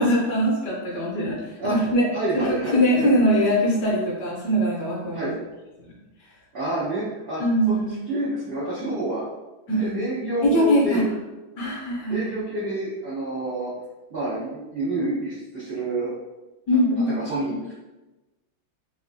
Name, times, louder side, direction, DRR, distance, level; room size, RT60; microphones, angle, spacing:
voice 1, 0.0-2.1 2.3-5.2 5.8-5.9 7.4-7.9 9.7-10.0 10.4-11.0 11.6-12.3 16.7-17.2, equal, 65° left, -4 dB, 1.1 m, -22 dB
voice 2, 2.1-3.1 5.1-5.4 6.5-7.4 7.7-7.8 8.1-9.3 9.8-11.1 12.1-13.7 14.1-16.1 17.1-17.7, right 1 dB, 85° right, -10 dB, 0.5 m, -28 dB
3.4 x 2.3 x 2.5 m, 1.1 s
omnidirectional pair, 2.3 m